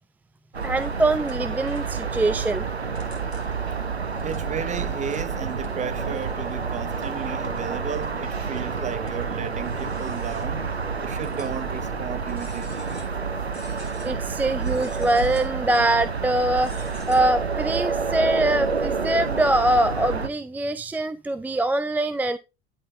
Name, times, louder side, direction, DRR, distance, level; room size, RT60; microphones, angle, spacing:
sound 1, 0.5-20.3, right 5 dB, 90° right, 0.7 m, -29 dB
sound 2, 0.6-2.4 2.8-3.7 4.1-4.8 5.1-5.3 5.6-6.6 7.1-7.2 7.6-8.2 8.6-10.7 11.2-11.8 12.3-13.2 13.5-14.1 14.6-15.6 16.5-17.2, left 1 dB, 90° left, 2.3 m, -49 dB
voice 1, 0.6-2.6 14.0-22.4, right 1 dB, 5° right, 0.4 m, -23 dB
voice 2, 4.2-10.7 11.0-12.9, right 7 dB, 25° right, 0.8 m, -34 dB
10.5 x 5.4 x 3.4 m
figure-of-eight pair, 70°, 31 cm